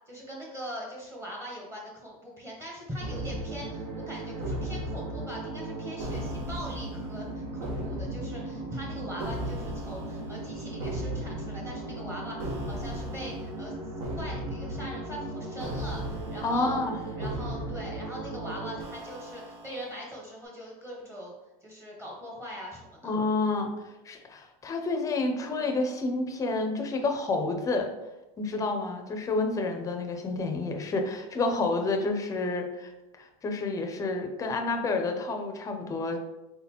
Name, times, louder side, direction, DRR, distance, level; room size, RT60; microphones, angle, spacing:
voice 1, 0.1-16.8 17.2-21.3 21.6-23.1, equal, 15° right, -3 dB, 1.0 m, -41 dB
sound 1, 3.0-19.9, right 1 dB, 70° right, 1.1 m, -35 dB
voice 2, 16.4-17.0 23.0-23.7 24.1-27.9 28.4-32.9 33.2-36.2, left 3 dB, 20° left, 5 dB, 0.5 m, -29 dB
4.1 x 3.8 x 2.9 m, 1.0 s
supercardioid pair, 140°, 19 cm